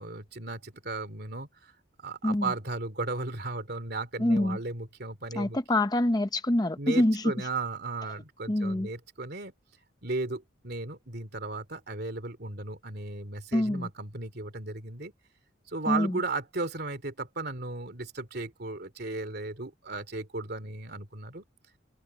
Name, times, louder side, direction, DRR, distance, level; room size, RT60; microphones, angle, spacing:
voice 1, 0.0-1.7 2.0-5.6 6.8-9.5 10.0-15.1 15.7-21.4, right 3 dB, 55° right, 3.0 m, -35 dB
voice 2, 2.2-2.5 4.2-4.6 5.3-7.5 8.5-8.9 13.5-13.9 15.9-16.2, left 1 dB, 20° left, 0.7 m, -26 dB
head